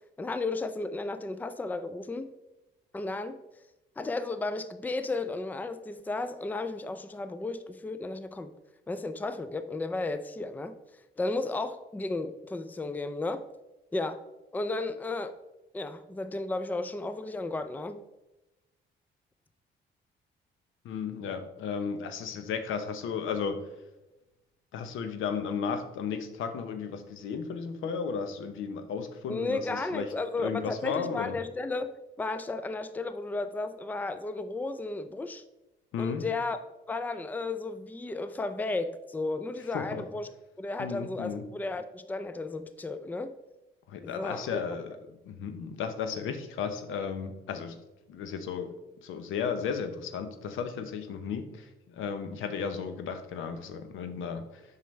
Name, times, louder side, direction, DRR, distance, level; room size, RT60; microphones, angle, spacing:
voice 1, 0.2-2.3 2.9-3.4 4.0-8.5 8.9-10.7 11.2-13.4 13.9-14.2 14.5-15.3 15.7-18.0 29.3-35.4 36.0-36.6 36.9-40.3 40.6-43.3 44.0-44.6, left 3 dB, 10° left, 11 dB, 0.4 m, -34 dB
voice 2, 20.8-23.7 24.7-31.4 35.9-36.2 39.7-40.0 40.8-41.4 43.9-47.8 48.1-48.7 49.0-54.8, left 6 dB, 80° left, 8 dB, 0.8 m, -34 dB
7.6 x 5.7 x 3.2 m, 1.0 s
cardioid pair, 90°, 20 cm